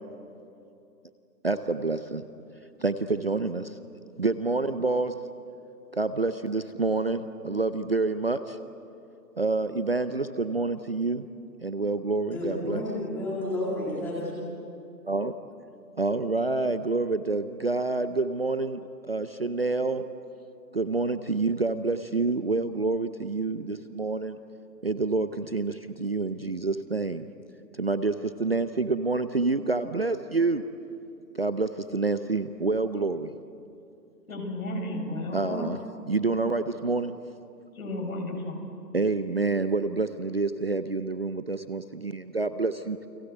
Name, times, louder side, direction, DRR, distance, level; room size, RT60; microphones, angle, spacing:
voice 1, 1.4-2.2 2.8-3.6 4.2-5.1 6.0-8.4 9.4-11.2 11.6-12.8 15.1-15.3 16.0-18.8 19.1-20.0 20.7-24.4 24.8-25.7 26.0-27.2 27.8-28.1 28.4-30.6 31.4-33.3 35.3-35.8 36.1-37.1 38.9-43.0, right 3 dB, 40° right, 11 dB, 0.6 m, -27 dB
voice 2, 12.3-14.3, left 1 dB, 5° left, -6 dB, 2.3 m, -31 dB
voice 3, 34.3-35.7 37.7-38.6, left 1 dB, 55° left, 2 dB, 6.7 m, -33 dB
30.0 x 23.0 x 8.0 m, 2.7 s
hypercardioid pair, 175°, 50 cm